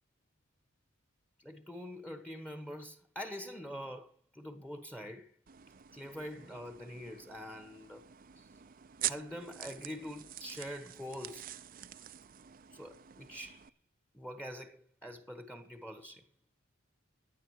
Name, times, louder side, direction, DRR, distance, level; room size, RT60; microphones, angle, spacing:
voice 1, 1.4-5.4 5.9-8.0 8.4-8.5 9.0-11.5 12.7-13.7 14.1-16.2, equal, 5° left, 1.2 m, -45 dB
sound 1, 5.5-13.7, right 12 dB, 45° right, 0.6 m, -45 dB
15.5 x 10.5 x 4.8 m
head